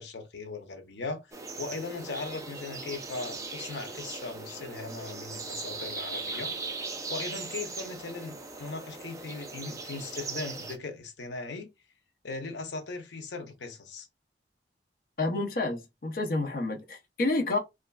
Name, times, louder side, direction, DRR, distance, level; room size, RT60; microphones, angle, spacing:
voice 1, 0.0-1.3 1.6-6.5 7.1-11.7 12.2-14.1, left 3 dB, 90° left, 0.7 m, -38 dB
sound 1, 1.3-10.8, right 3 dB, 20° right, 0.4 m, -39 dB
voice 2, 15.2-17.6, left 2 dB, 55° left, 0.6 m, -29 dB
3.1 x 2.4 x 2.2 m
head